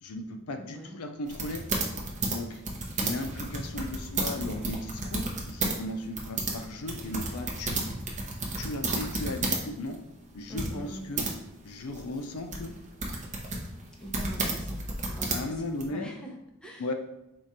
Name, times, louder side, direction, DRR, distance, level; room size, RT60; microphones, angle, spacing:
voice 1, 0.0-1.7 2.2-2.6 3.0-7.8 8.6-10.0 10.3-11.3 11.6-12.7 15.3-16.1 16.8-16.9, left 2 dB, 75° left, 6 dB, 0.5 m, -36 dB
voice 2, 0.6-1.0 10.5-11.1 14.0-14.8 15.1-16.9, right 1 dB, 5° left, -1 dB, 0.6 m, -43 dB
sound 1, 1.3-5.8 6.0-9.6 9.9-10.0 10.6-11.3 11.9-15.8, right 2 dB, 35° right, 0.8 m, -32 dB
4.7 x 2.5 x 4.2 m, 0.90 s
head